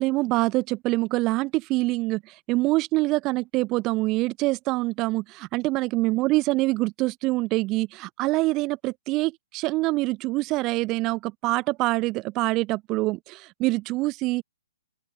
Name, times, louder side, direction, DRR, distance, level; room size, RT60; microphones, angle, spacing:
voice 1, 0.0-14.4, right 21 dB, 25° right, 4.8 m, -25 dB
open air
hypercardioid pair, 155°, 0 cm